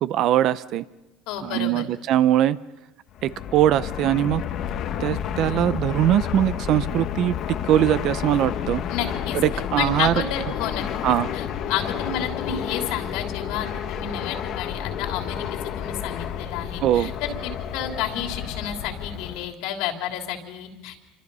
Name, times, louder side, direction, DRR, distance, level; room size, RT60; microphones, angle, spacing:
voice 1, 0.0-0.8 1.4-2.6 3.2-4.4 5.0-7.4 7.6-8.8 9.3-10.1 11.0-11.3 16.8-17.1, right 12 dB, 45° right, 16 dB, 0.7 m, -21 dB
voice 2, 1.3-1.8 8.9-9.4 9.8-21.0, left 8 dB, 70° left, 3 dB, 3.3 m, -31 dB
Fixed-wing aircraft airplane, 3.1-19.5, left 9 dB, 45° left, 1.2 m, -30 dB
27.5 x 25.0 x 5.6 m, 1.1 s
cardioid pair, 155°, 0 cm